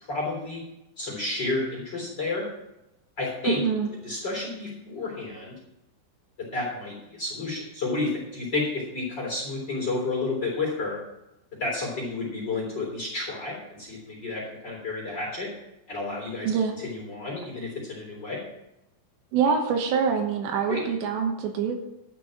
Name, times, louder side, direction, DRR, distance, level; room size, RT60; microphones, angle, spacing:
voice 1, 0.1-0.6 1.0-2.4 3.2-3.6 4.0-5.5 6.5-11.0 11.6-15.5 15.9-16.5 16.8-18.4 20.7-20.8, left 3 dB, 25° left, -2 dB, 3.4 m, -31 dB
voice 2, 3.4-3.9 16.4-16.7 19.3-21.8, right 6 dB, 75° right, 4 dB, 3.1 m, -25 dB
12.5 x 6.2 x 7.4 m, 0.89 s
omnidirectional pair, 5.7 m